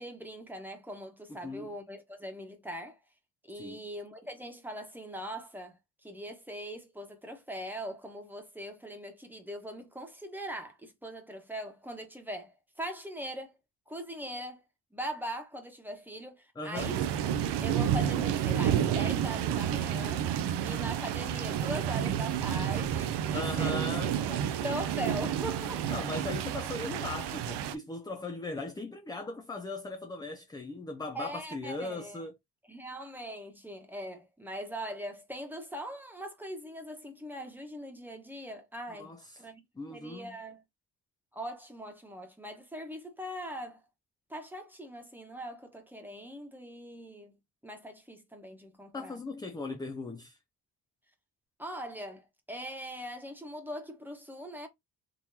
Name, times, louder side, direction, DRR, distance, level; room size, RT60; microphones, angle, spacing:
voice 1, 0.0-3.0 3.4-13.6 13.9-14.6 14.9-17.0 17.6-20.3 20.6-23.8 24.3-26.0 31.1-32.2 32.7-39.6 39.9-40.6 41.3-43.8 44.3-47.4 47.6-49.2 51.6-54.7, equal, 5° right, 1.1 m, -41 dB
voice 2, 16.6-17.0 23.3-24.2 25.9-32.3 39.0-39.5 39.8-40.4 48.9-50.4, left 3 dB, 10° left, 0.3 m, -38 dB
sound 1, 16.7-27.7, right 9 dB, 85° right, 0.6 m, -30 dB
3.8 x 2.9 x 2.7 m
cardioid pair, 105°, 40 cm